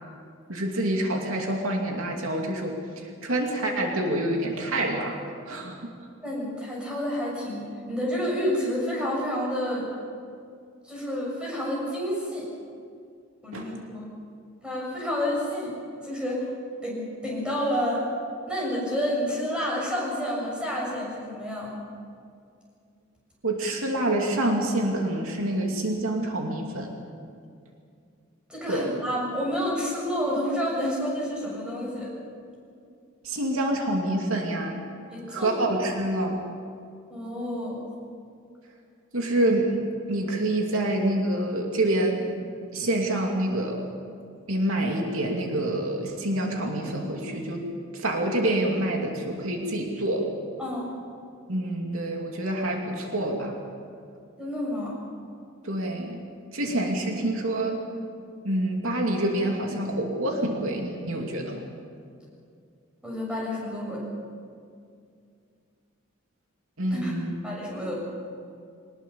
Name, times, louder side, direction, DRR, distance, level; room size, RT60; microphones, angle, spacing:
voice 1, 0.5-5.2 5.5-5.9 13.5-13.7 23.4-26.9 28.7-28.9 33.2-34.8 35.3-36.4 39.1-39.7 40.1-42.3 42.7-43.8 44.5-47.6 47.9-50.3 51.5-53.6 55.6-56.2 56.5-57.8 58.4-61.6 66.8-67.3, right 1 dB, 80° right, 1 dB, 2.7 m, -27 dB
voice 2, 6.2-9.9 10.8-12.5 13.4-14.1 14.6-15.7 16.0-16.4 16.8-18.1 18.5-21.7 28.5-32.1 35.1-35.6 37.1-37.8 50.6-50.9 54.4-55.0 63.0-64.0 66.9-67.1 67.4-67.9, equal, 5° right, -4 dB, 6.8 m, -29 dB
22.5 x 20.0 x 7.1 m, 2.3 s
head